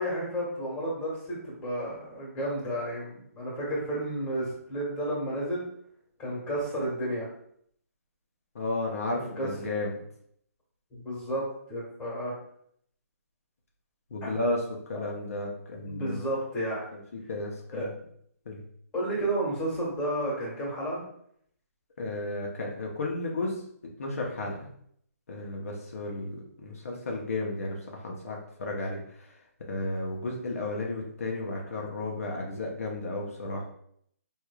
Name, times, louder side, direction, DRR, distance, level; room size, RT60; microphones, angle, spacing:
voice 1, 0.0-5.6 6.2-7.3 9.4-9.5 10.9-11.4 11.7-12.3 14.2-14.3 15.9-16.8 17.7-17.8 18.9-21.0, right 1 dB, 10° left, -6 dB, 1.5 m, -31 dB
voice 2, 8.5-10.0 14.1-14.6 14.9-16.2 16.9-17.0 17.3-17.9 18.5-18.6 22.0-23.6 24.0-24.7 25.3-29.3 29.7-33.6, left 2 dB, 65° left, -1 dB, 0.8 m, -33 dB
4.8 x 2.7 x 2.3 m, 0.67 s
hypercardioid pair, 150°, 9 cm